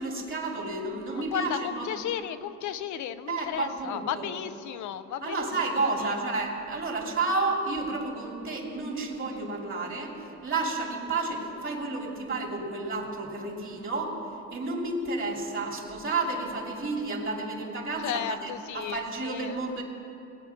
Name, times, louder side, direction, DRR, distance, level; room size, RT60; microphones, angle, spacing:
voice 1, 0.0-2.0 3.3-4.4 5.2-14.2 14.5-19.8, right 3 dB, 40° right, 0 dB, 2.7 m, -31 dB
voice 2, 1.1-5.5 5.8-6.2 18.0-19.6, left 10 dB, 75° left, 11 dB, 0.6 m, -34 dB
19.5 x 8.7 x 5.8 m, 2.9 s
cardioid pair, 90°, 30 cm